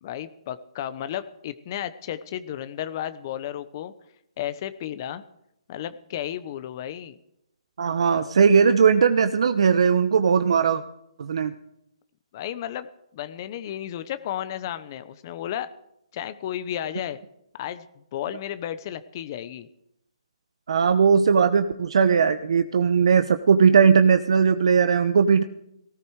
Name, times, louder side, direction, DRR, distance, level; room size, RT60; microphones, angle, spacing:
voice 1, 0.0-3.9 4.4-5.2 5.7-7.2 12.3-12.9 13.1-15.7 16.1-17.2 17.5-17.9 18.1-19.7, left 11 dB, 35° left, 12 dB, 0.9 m, -33 dB
voice 2, 7.8-10.8 11.2-11.5 20.7-25.4, right 6 dB, 65° right, 11 dB, 1.0 m, -19 dB
18.0 x 16.0 x 4.8 m, 0.80 s
hypercardioid pair, 150°, 3 cm